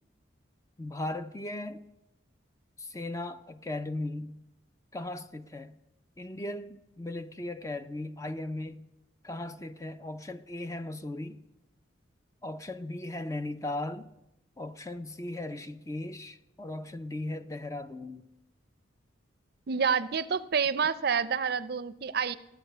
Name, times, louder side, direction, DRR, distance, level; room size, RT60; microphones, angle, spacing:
voice 1, 0.8-1.8 2.8-4.4 4.9-5.8 6.2-8.8 9.2-11.4 12.4-14.1 14.6-18.3, left 2 dB, 15° left, 0.4 m, -37 dB
voice 2, 19.7-22.4, right 6 dB, 55° right, 0.5 m, -28 dB
15.0 x 9.9 x 6.7 m
head